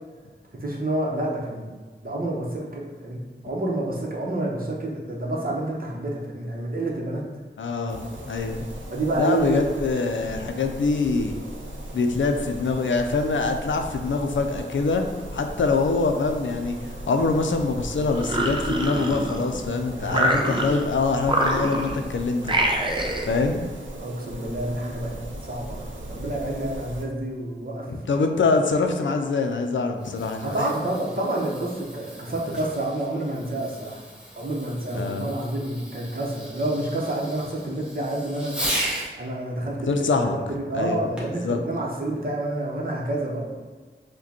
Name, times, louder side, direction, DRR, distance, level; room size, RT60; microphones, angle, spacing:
voice 1, 0.5-1.7 2.0-7.3 8.9-9.6 20.0-20.6 24.0-25.1 25.4-27.9 30.4-34.0 34.4-38.6 39.2-43.5, right 1 dB, 50° right, -3 dB, 0.8 m, -28 dB
voice 2, 7.6-8.7 9.2-11.4 11.9-15.0 15.3-22.6 23.3-23.6 27.9-30.7 34.9-35.3 39.9-40.4 40.7-41.0 41.4-41.6, left 4 dB, 80° left, 5 dB, 0.4 m, -24 dB
sound 1, 7.9-27.0, right 1 dB, 80° right, 0.6 m, -38 dB
sound 2, 18.1-19.6 20.1-20.9 21.2-22.0 22.4-23.3, right 1 dB, 25° right, 0.5 m, -25 dB
Fireworks, 30.0-39.1 41.2-41.5 42.2-42.3, right 1 dB, 5° right, 1.0 m, -36 dB
4.9 x 2.2 x 2.8 m, 1.4 s
wide cardioid pair, 50°, 19 cm